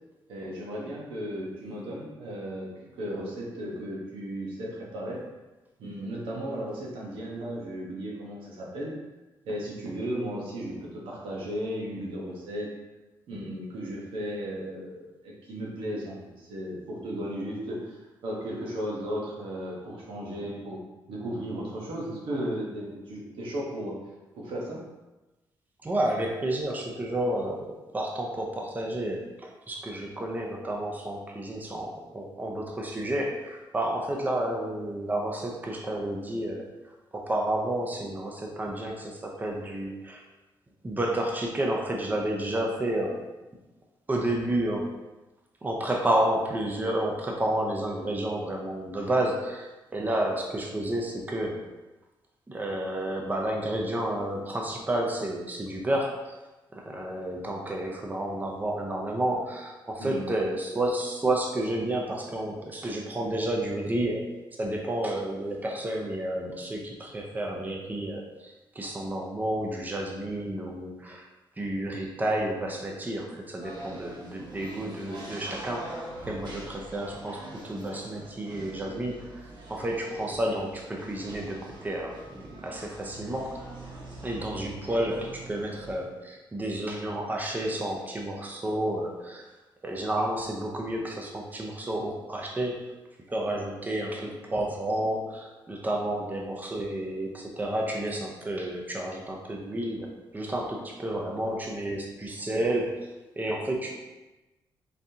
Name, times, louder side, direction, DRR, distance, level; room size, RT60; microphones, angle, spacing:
voice 1, 0.3-2.7 3.0-5.2 5.8-8.9 9.4-12.7 13.3-20.8 21.1-24.0 24.4-24.8 60.0-60.3, equal, 90° right, -3 dB, 1.1 m, -35 dB
voice 2, 25.8-36.7 37.1-40.2 40.8-43.3 44.1-45.0 45.6-51.6 52.5-56.3 56.7-64.2 64.6-71.3 71.6-83.6 84.2-89.4 89.8-93.0 93.3-103.1 103.4-103.9, right 1 dB, 20° right, 0 dB, 0.6 m, -31 dB
sound 1, 73.6-86.0, right 1 dB, 60° right, 1.0 m, -44 dB
4.0 x 3.5 x 2.8 m, 1.1 s
cardioid pair, 95°, 9 cm